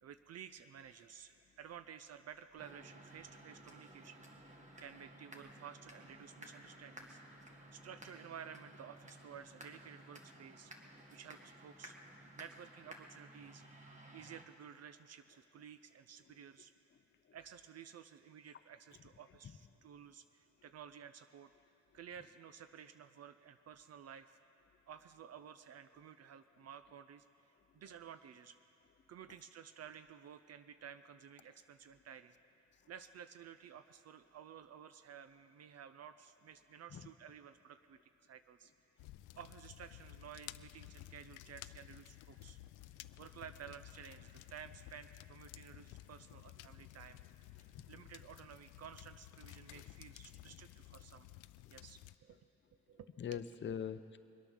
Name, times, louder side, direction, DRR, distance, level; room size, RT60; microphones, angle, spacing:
voice 1, 0.0-4.2 4.8-7.2 7.7-10.7 11.1-12.0 12.4-13.6 14.1-16.7 17.3-21.5 21.9-24.4 24.9-28.6 29.1-32.3 32.9-38.7 39.4-42.6 43.2-47.2 47.6-51.3 51.7-52.4 52.9-53.4, right 8 dB, 55° right, 11 dB, 0.6 m, -54 dB
sound 1, 2.6-14.4, right 1 dB, 25° right, 1.9 m, -56 dB
sound 2, 39.0-52.2, left 15 dB, 85° left, 0.5 m, -54 dB
voice 2, 53.2-54.2, left 8 dB, 40° left, 12 dB, 0.6 m, -43 dB
22.5 x 8.9 x 6.4 m, 2.8 s
cardioid pair, 90°, 30 cm